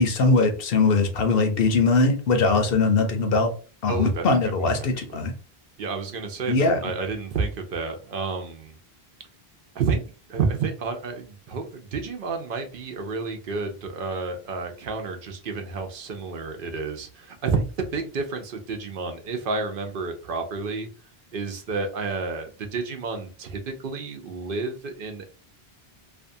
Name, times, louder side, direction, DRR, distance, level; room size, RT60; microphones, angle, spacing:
voice 1, 0.0-3.5 3.8-5.3 6.5-6.8, left 3 dB, 70° left, 6 dB, 0.8 m, -21 dB
voice 2, 3.9-4.2 4.6-5.2 5.8-8.8 9.7-10.0 10.3-20.9 21.3-25.2, right 4 dB, 65° right, 5 dB, 0.7 m, -30 dB
2.5 x 2.3 x 2.6 m, 0.36 s
omnidirectional pair, 1.0 m